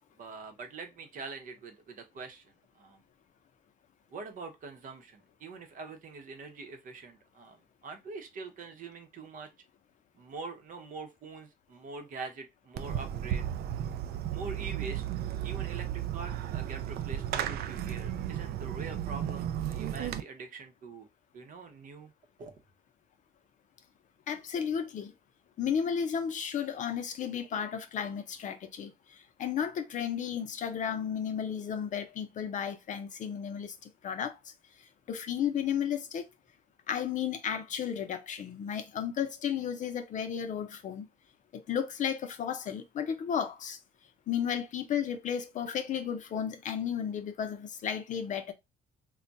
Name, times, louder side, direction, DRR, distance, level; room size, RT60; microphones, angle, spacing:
voice 1, 0.2-3.0 4.1-9.5 10.2-13.4 14.3-15.0 15.4-21.1 21.3-22.1 22.4-22.5, right 4 dB, 50° right, 0.8 m, -44 dB
Fireworks, 12.8-20.2, right 11 dB, 65° right, 0.4 m, -34 dB
voice 2, 24.3-25.1 25.6-34.5 34.8-36.3 36.9-41.1 41.5-43.8 44.3-48.5, left 8 dB, 50° left, 0.6 m, -33 dB
2.3 x 2.2 x 3.9 m
cardioid pair, 110°, 17 cm